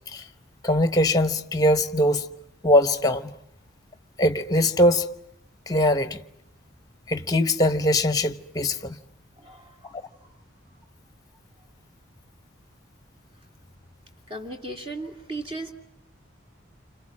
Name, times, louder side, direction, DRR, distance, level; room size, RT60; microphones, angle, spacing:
voice 1, 0.6-2.3 2.6-3.3 4.2-5.1 5.7-6.2 7.1-9.0, left 1 dB, 20° left, 1.0 m, -21 dB
voice 2, 9.4-9.9 14.3-15.7, right 2 dB, 30° right, 2.8 m, -36 dB
29.5 x 27.0 x 7.6 m
head